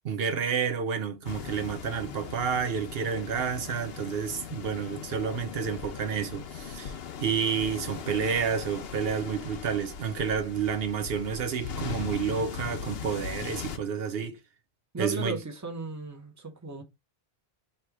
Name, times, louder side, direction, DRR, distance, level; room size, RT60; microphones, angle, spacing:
voice 1, 0.1-6.9 7.2-14.4 15.0-15.4, right 6 dB, 75° right, 0.9 m, -30 dB
sound 1, 1.2-13.8, left 7 dB, 75° left, 0.8 m, -39 dB
voice 2, 14.9-16.8, right 3 dB, 20° right, 0.8 m, -36 dB
3.2 x 2.9 x 4.6 m
omnidirectional pair, 1.1 m